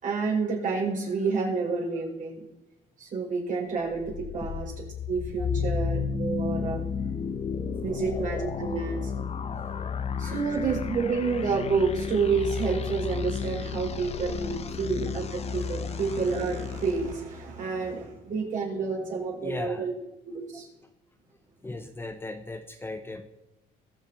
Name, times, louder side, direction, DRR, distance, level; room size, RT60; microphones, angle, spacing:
voice 1, 0.0-2.4 3.0-4.7 5.1-6.8 7.8-9.1 10.2-20.0 20.3-20.7, right 4 dB, 50° right, -2 dB, 5.5 m, -29 dB
sound 1, 3.9-17.1, left 6 dB, 40° left, 1.1 m, -32 dB
voice 2, 5.4-5.7 7.9-8.0 10.2-10.4 14.3-14.4 19.4-19.9 20.3-20.6 21.6-23.3, left 2 dB, 15° left, 7 dB, 0.9 m, -38 dB
22.0 x 7.4 x 4.4 m, 0.92 s
cardioid pair, 110°, 17 cm